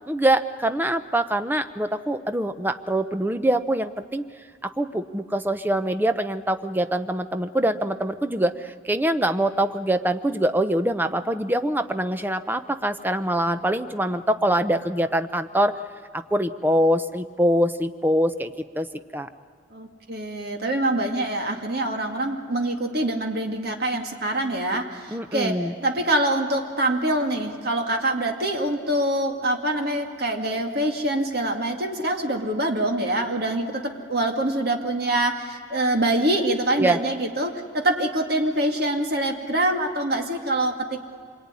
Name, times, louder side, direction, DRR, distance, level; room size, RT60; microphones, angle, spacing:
voice 1, 0.1-4.2 4.6-15.7 16.1-18.9 19.1-19.3 25.1-25.7 36.8-37.0, right 1 dB, 10° right, 10 dB, 0.7 m, -24 dB
voice 2, 19.7-41.0, right 1 dB, 55° right, 3 dB, 2.3 m, -25 dB
26.0 x 22.5 x 9.7 m, 2.1 s
head